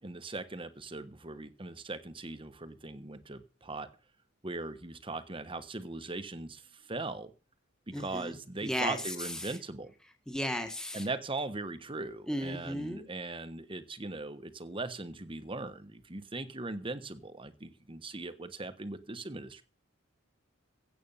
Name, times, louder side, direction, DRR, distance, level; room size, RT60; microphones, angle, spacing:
voice 1, 0.0-3.9 4.4-7.3 7.9-9.9 10.9-19.6, right 2 dB, 25° right, 11 dB, 1.2 m, -39 dB
voice 2, 7.9-8.4 8.6-9.6 10.3-11.1 12.3-13.0, equal, 5° left, 5 dB, 1.5 m, -35 dB
16.0 x 8.1 x 5.6 m, 0.35 s
head